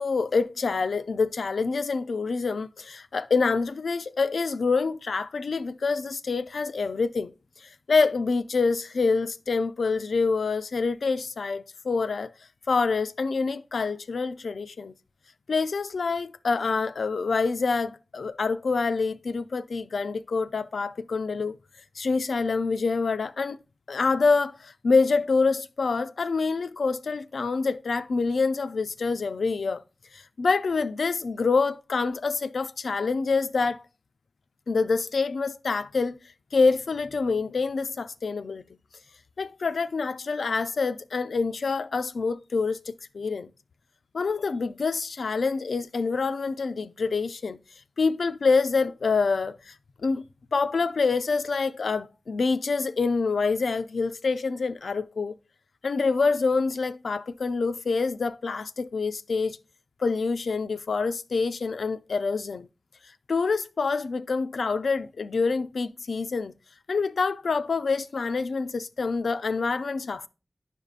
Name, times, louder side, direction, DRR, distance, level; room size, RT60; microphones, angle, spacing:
voice 1, 0.0-7.3 7.9-12.3 12.7-14.9 15.5-21.6 22.0-23.6 23.9-29.8 30.1-33.8 34.7-36.2 36.5-38.6 39.4-43.5 44.1-47.6 48.0-49.7 50.0-50.2 50.5-55.3 55.8-59.6 60.0-62.7 63.3-66.5 66.9-70.3, left 4 dB, 90° left, 0.4 m, -26 dB
10.5 x 5.3 x 2.4 m
wide cardioid pair, 70°, 0 cm